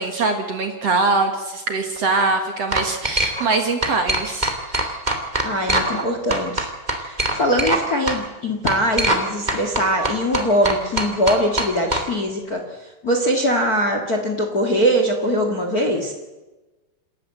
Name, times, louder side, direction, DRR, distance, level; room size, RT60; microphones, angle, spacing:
voice 1, 0.0-5.0, right 3 dB, 55° right, 5 dB, 1.9 m, -23 dB
sound 1, 1.9-2.2 2.7-3.6 3.8-6.0 6.3-8.2 8.7-9.2 9.5-12.0, right 1 dB, 20° right, 1.3 m, -22 dB
voice 2, 5.4-6.7 7.0-12.6 13.0-16.1, equal, 45° left, 4 dB, 1.2 m, -21 dB
27.5 x 13.0 x 7.8 m, 1.1 s
omnidirectional pair, 5.1 m